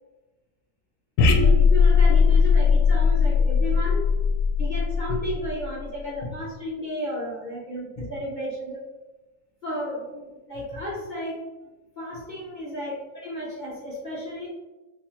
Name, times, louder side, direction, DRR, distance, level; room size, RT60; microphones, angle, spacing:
sound 1, 1.2-5.8, left 5 dB, 80° left, 1.1 m, -19 dB
voice 1, 1.3-4.0 4.6-8.8 9.6-11.4 12.0-14.5, equal, 40° left, -6 dB, 0.7 m, -33 dB
3.3 x 2.4 x 4.3 m, 1.1 s
omnidirectional pair, 1.6 m